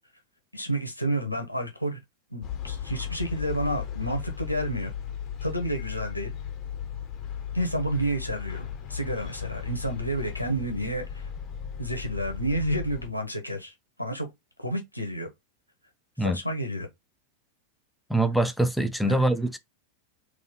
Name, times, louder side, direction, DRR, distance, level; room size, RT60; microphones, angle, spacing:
voice 1, 0.5-2.0 2.3-4.9 5.4-6.3 7.5-11.3 11.8-13.7 14.0-14.3 14.6-15.3 16.2-16.9 19.0-19.2, right 1 dB, 90° left, 1.2 m, -30 dB
sound 1, 2.4-13.1, left 9 dB, 30° left, 1.0 m, -36 dB
voice 2, 18.1-19.6, right 1 dB, ahead, 0.5 m, -24 dB
3.9 x 2.9 x 3.9 m
figure-of-eight pair, 90°, 0 cm